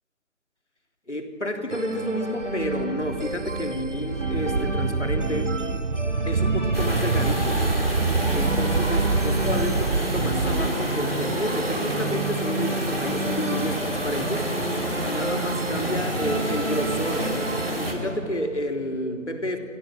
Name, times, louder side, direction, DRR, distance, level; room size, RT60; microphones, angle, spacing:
voice 1, 1.1-5.6 6.3-7.6 8.3-17.3 17.7-19.6, equal, 60° left, 5 dB, 3.4 m, -30 dB
sound 1, 1.7-17.7, right 2 dB, 65° right, 2.9 m, -32 dB
sound 2, 2.4-10.7, right 4 dB, 90° right, 1.1 m, -26 dB
sound 3, 6.7-17.9, right 1 dB, 45° right, 4.1 m, -28 dB
29.5 x 24.5 x 7.5 m, 2.5 s
figure-of-eight pair, 175°, 40 cm